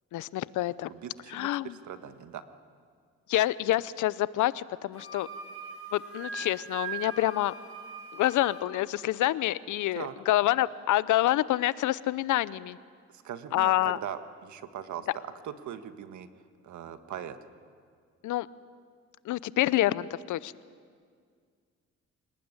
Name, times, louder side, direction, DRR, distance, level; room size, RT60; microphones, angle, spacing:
voice 1, 0.1-0.9 1.3-1.7 3.3-5.3 5.9-7.5 8.1-12.8 13.5-14.0 18.2-18.5 19.3-20.5, left 14 dB, 80° left, 18 dB, 0.7 m, -27 dB
voice 2, 0.9-2.4 9.9-10.2 13.1-16.3 16.6-17.4, right 9 dB, 70° right, 9 dB, 1.7 m, -40 dB
Wind instrument woodwind instrument, 4.9-8.7, right 5 dB, 45° right, 5.6 m, -41 dB
26.5 x 18.5 x 9.7 m, 2.1 s
cardioid pair, 90°, 30 cm